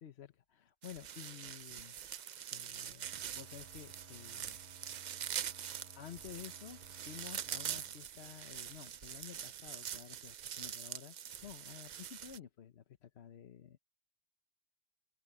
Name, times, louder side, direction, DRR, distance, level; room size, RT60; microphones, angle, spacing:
voice 1, 0.0-2.0 2.5-4.6 6.0-11.2 11.4-13.8, left 9 dB, 80° left, 1.1 m, -52 dB
sound 1, 0.8-12.4, right 9 dB, 55° right, 0.6 m, -44 dB
sound 2, 3.0-9.5, right 2 dB, 80° right, 3.0 m, -60 dB
omnidirectional pair, 1.1 m